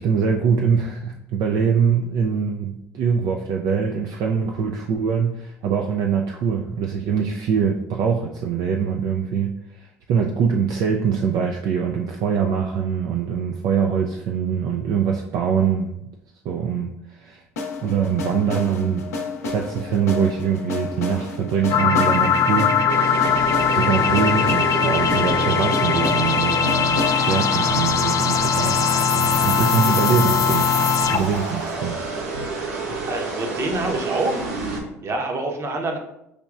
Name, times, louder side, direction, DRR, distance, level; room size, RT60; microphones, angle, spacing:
voice 1, 0.0-16.0 16.4-17.4 17.8-19.1 19.4-22.7 23.0-30.7 31.1-32.0, right 7 dB, 55° right, 2 dB, 0.4 m, -23 dB
sound 1, 17.6-29.5, left 4 dB, 80° left, 0.7 m, -31 dB
sound 2, 21.7-31.4, left 7 dB, 40° left, 0.4 m, -20 dB
sound 3, 22.8-34.8, right 3 dB, 75° right, 0.9 m, -29 dB
voice 2, 33.1-34.5 35.0-36.0, right 2 dB, 35° right, 3 dB, 0.9 m, -26 dB
6.5 x 2.9 x 2.4 m, 0.83 s
hypercardioid pair, 65°, 8 cm